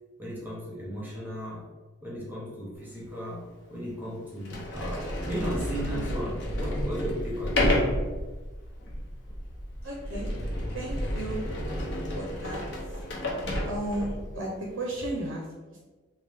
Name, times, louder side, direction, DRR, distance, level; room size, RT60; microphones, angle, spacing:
voice 1, 0.2-1.6 2.0-3.4 3.7-7.8, equal, 10° right, -5 dB, 0.8 m, -35 dB
Sliding door, 3.0-3.1 3.9-4.0 4.4-14.3, left 1 dB, 60° left, 0.7 m, -31 dB
voice 2, 9.8-11.7 12.1-13.0 13.7-15.8, right 1 dB, 85° right, -3 dB, 0.7 m, -35 dB
3.5 x 2.3 x 3.4 m, 1.3 s
head